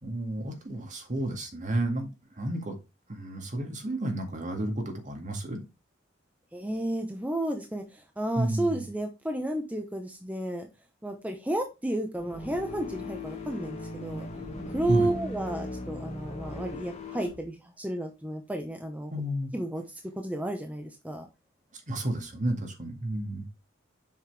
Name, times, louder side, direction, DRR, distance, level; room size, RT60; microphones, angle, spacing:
voice 1, 0.0-2.1 2.4-2.8 3.1-5.6 8.4-8.9 14.9-15.1 19.1-19.5 21.9-23.5, right 1 dB, 40° right, 4 dB, 2.0 m, -31 dB
voice 2, 6.5-10.7 11.0-14.3 14.7-19.1 19.5-19.9 20.2-21.3, right 1 dB, 10° right, 3 dB, 0.9 m, -32 dB
sound 1, 12.2-17.4, left 2 dB, 35° left, 2.2 m, -38 dB
7.5 x 5.8 x 3.4 m, 0.26 s
head